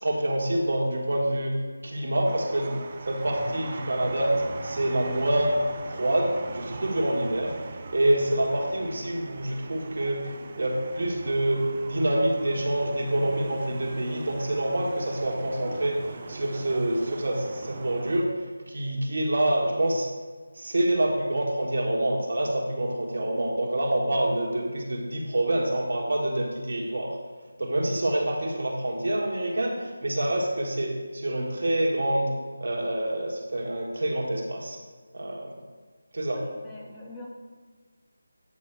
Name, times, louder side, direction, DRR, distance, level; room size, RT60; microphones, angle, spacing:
voice 1, 0.0-2.8 3.0-10.3 10.6-20.1 20.5-27.2 27.6-32.3 32.6-34.8 35.1-35.5 36.1-36.4, right 1 dB, 55° right, 0 dB, 1.5 m, -27 dB
sound 1, 2.2-18.2, right 4 dB, 30° right, 0.5 m, -41 dB
voice 2, 36.3-37.3, left 2 dB, 10° left, -6 dB, 1.1 m, -43 dB
8.8 x 5.4 x 4.5 m, 1.5 s
figure-of-eight pair, 160°, 0 cm